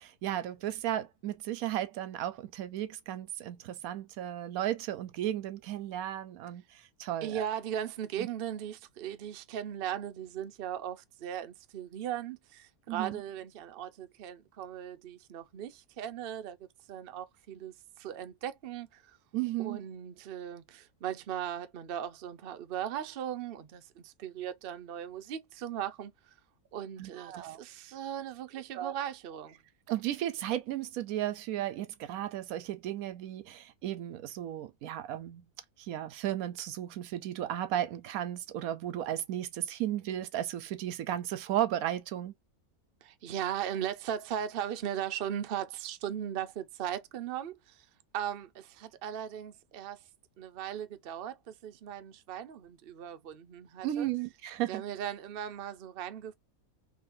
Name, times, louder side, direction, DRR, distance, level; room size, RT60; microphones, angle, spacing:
voice 1, 0.0-7.5 8.2-8.3 12.9-13.2 19.3-19.8 27.0-27.6 28.7-28.9 29.9-35.4 35.8-42.3 53.8-54.8, right 12 dB, 75° right, 1.0 m, -34 dB
voice 2, 7.2-16.6 16.9-19.2 19.6-26.1 26.7-29.6 43.0-47.9 48.1-50.0 50.4-54.1 54.7-56.3, right 10 dB, 55° right, 0.7 m, -38 dB
3.7 x 3.2 x 2.5 m
omnidirectional pair, 1.5 m